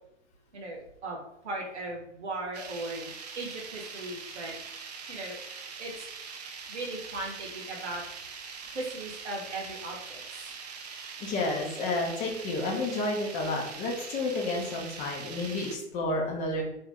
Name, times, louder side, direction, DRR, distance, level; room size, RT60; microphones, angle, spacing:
voice 1, 0.5-3.1 3.4-4.5 5.1-5.4 5.8-6.1 6.7-8.0 8.7-10.5, right 2 dB, 65° right, 0 dB, 1.0 m, -38 dB
sound 1, 2.5-15.8, right 5 dB, 35° right, 0.4 m, -43 dB
voice 2, 11.2-16.6, left 2 dB, 20° left, 0 dB, 0.6 m, -31 dB
2.7 x 2.5 x 3.4 m, 0.82 s
figure-of-eight pair, 105°, 36 cm